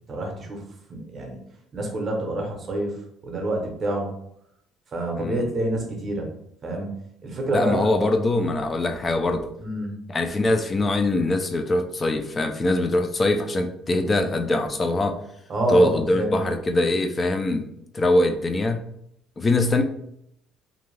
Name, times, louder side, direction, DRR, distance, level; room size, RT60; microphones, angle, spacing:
voice 1, 0.1-0.6 0.9-1.4 1.7-2.9 3.2-4.1 4.9-6.3 6.6-6.9 7.2-7.9 9.6-9.9 15.5-16.4, right 1 dB, 30° right, 1 dB, 0.7 m, -27 dB
voice 2, 5.1-5.5 7.5-9.5 10.1-15.1 15.7-17.6 17.9-18.8 19.4-19.8, left 2 dB, 20° left, 5 dB, 0.3 m, -22 dB
2.5 x 2.3 x 3.1 m, 0.75 s
cardioid pair, 150°, 0 cm